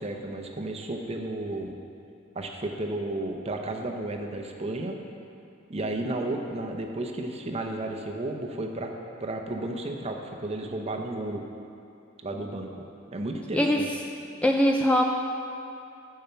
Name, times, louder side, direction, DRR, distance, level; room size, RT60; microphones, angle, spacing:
voice 1, 0.0-1.8 2.3-5.0 5.7-8.9 9.2-11.4 12.2-12.7 13.1-13.9, right 2 dB, 30° right, 2 dB, 0.7 m, -33 dB
voice 2, 13.5-13.8 14.4-15.0, equal, 5° left, 1 dB, 0.3 m, -21 dB
7.0 x 5.7 x 6.8 m, 2.7 s
head